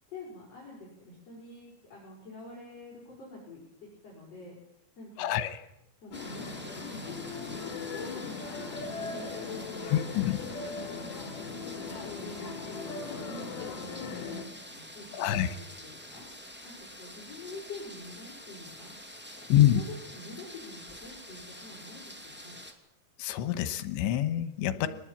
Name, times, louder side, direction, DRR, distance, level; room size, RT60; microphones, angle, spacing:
voice 1, 0.1-4.6 5.0-5.4 6.0-10.0 10.4-11.3 11.8-14.4 14.7-16.2 16.6-18.9 19.4-22.6 24.8-24.9, left 3 dB, 35° left, -5 dB, 6.9 m, -47 dB
voice 2, 5.2-5.6 9.9-10.4 15.1-15.5 19.5-19.8 23.2-24.9, left 12 dB, 85° left, 11 dB, 3.5 m, -26 dB
sound 1, 6.1-14.4, left 4 dB, 60° left, 4.2 m, -39 dB
sound 2, 6.1-22.7, equal, 5° right, 1.0 m, -47 dB
23.5 x 20.0 x 8.5 m, 0.84 s
omnidirectional pair, 5.1 m